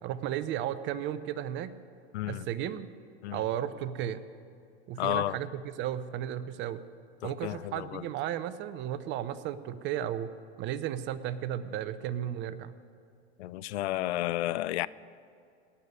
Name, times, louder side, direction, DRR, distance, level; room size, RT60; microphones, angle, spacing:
voice 1, 0.0-1.7 2.3-2.9 3.3-4.2 4.9-6.8 7.2-12.7, right 11 dB, 35° right, 0.7 m, -34 dB
voice 2, 2.1-2.5 3.2-3.4 5.0-5.4 7.2-8.0 13.4-14.9, left 15 dB, 70° left, 0.5 m, -32 dB
18.0 x 6.9 x 9.6 m
hypercardioid pair, 120°, 34 cm